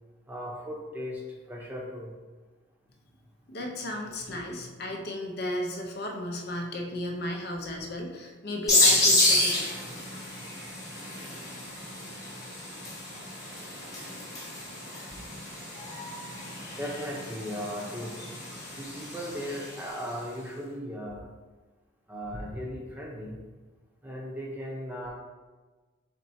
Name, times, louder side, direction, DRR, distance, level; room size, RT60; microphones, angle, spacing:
voice 1, 0.3-2.1 16.7-18.2 18.7-21.2 22.1-23.4 24.0-25.1, equal, 10° right, -3 dB, 0.7 m, -37 dB
voice 2, 3.5-9.7, left 1 dB, 55° left, 1 dB, 0.7 m, -34 dB
sound 1, 8.7-20.0, left 2 dB, 15° left, 1.2 m, -29 dB
4.4 x 4.2 x 2.7 m, 1.3 s
head